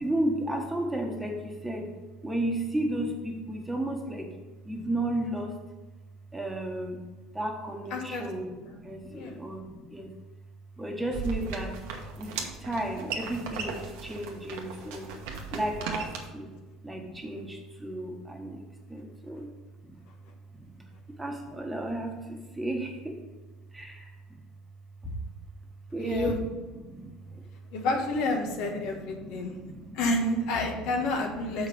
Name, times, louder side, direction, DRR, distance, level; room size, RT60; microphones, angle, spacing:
voice 1, 0.0-1.9 2.2-4.3 4.6-5.5 6.3-7.0 7.3-10.1 10.8-11.8 12.2-12.3 12.6-15.1 15.5-16.5 16.8-18.6 18.9-19.5 19.8-20.0 20.5-20.8 21.2-23.2 23.7-24.4 25.0-25.2 25.9-26.4 26.8-27.4 28.4-30.0 30.6-31.1 31.6-31.7, right 1 dB, 10° right, 2 dB, 1.5 m, -34 dB
voice 2, 7.9-8.2 8.6-8.7 9.1-9.4 26.0-26.4 27.7-29.6 29.9-31.7, left 2 dB, 70° left, 2 dB, 1.3 m, -29 dB
sound 1, 11.1-16.2, right 5 dB, 75° right, 1.1 m, -37 dB
6.3 x 5.3 x 5.5 m, 1.2 s
hypercardioid pair, 80°, 0 cm